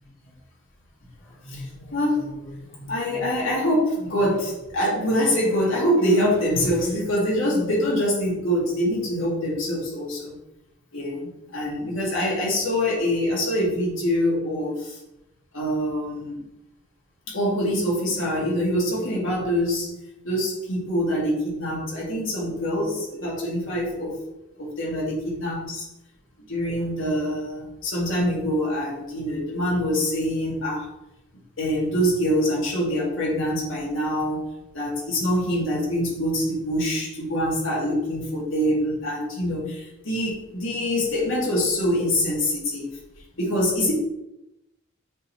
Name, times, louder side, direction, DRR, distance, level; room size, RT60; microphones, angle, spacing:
voice 1, 1.4-10.4 10.9-15.0 15.5-16.4 17.3-20.0 20.2-24.2 24.6-25.9 26.4-30.9 31.6-34.4 34.7-43.0 43.4-43.9, equal, 75° left, -4 dB, 2.2 m, -25 dB
7.6 x 3.9 x 3.2 m, 0.90 s
head